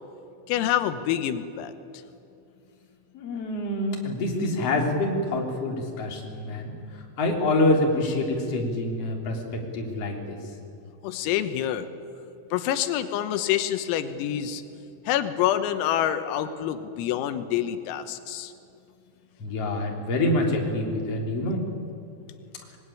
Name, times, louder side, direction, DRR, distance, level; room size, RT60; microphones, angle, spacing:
voice 1, 0.5-1.7 11.0-11.9 12.5-14.6 15.1-18.5, left 11 dB, 85° left, 10 dB, 3.8 m, -27 dB
voice 2, 3.1-10.4 19.4-21.7, left 1 dB, 35° left, 0 dB, 3.6 m, -26 dB
25.5 x 20.5 x 10.0 m, 2.6 s
omnidirectional pair, 5.9 m